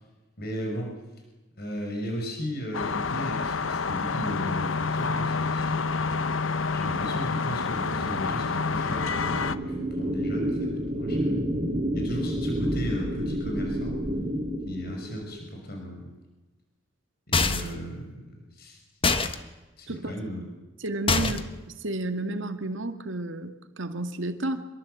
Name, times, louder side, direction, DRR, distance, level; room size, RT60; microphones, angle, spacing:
voice 1, 0.4-0.9 1.6-6.3 6.7-11.4 11.9-14.0 14.7-16.1 17.3-18.8 19.8-20.5 21.2-21.3, equal, 50° left, 1 dB, 5.9 m, -36 dB
sound 1, 2.7-9.6, left 4 dB, 80° left, 0.9 m, -28 dB
sound 2, 6.6-15.4, equal, 40° right, 4.4 m, -30 dB
sound 3, 17.3-17.8 19.0-19.4 21.1-21.6, left 4 dB, 25° left, 1.4 m, -24 dB
voice 2, 20.8-21.4 21.8-24.6, right 2 dB, 70° right, 7 dB, 2.1 m, -31 dB
26.0 x 22.5 x 8.2 m, 1.1 s
head